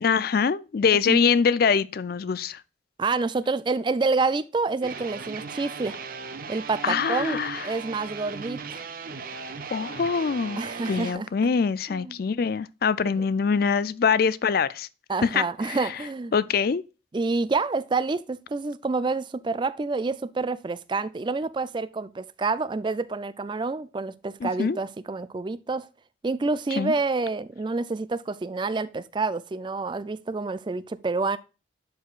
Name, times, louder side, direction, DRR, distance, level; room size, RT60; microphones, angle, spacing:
voice 1, 0.0-2.6 6.8-7.6 9.7-10.6 10.9-14.9 15.2-15.8 16.3-16.8 24.4-24.8 26.8-26.9, left 6 dB, 50° left, 0.4 m, -24 dB
voice 2, 3.0-5.9 6.5-8.8 10.6-11.3 11.9-12.2 13.1-13.3 15.1-16.3 17.1-25.9 26.2-31.4, right 3 dB, 25° right, 0.3 m, -28 dB
sound 1, 4.8-11.1, right 5 dB, 45° right, 0.7 m, -37 dB
11.0 x 4.8 x 2.4 m
head